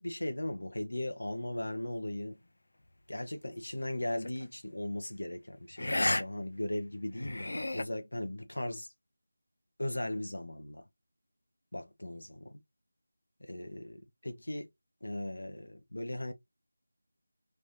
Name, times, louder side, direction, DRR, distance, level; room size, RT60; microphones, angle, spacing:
voice 1, 0.0-2.4 3.1-8.9 9.8-10.9 11.7-12.6 13.4-14.7 15.0-16.3, left 1 dB, 90° left, 1.1 m, -38 dB
sound 1, 4.2-4.4 5.8-6.2 6.6-6.7 7.2-7.8, left 2 dB, 70° left, 0.6 m, -31 dB
3.5 x 3.1 x 2.7 m
figure-of-eight pair, 175°, 0 cm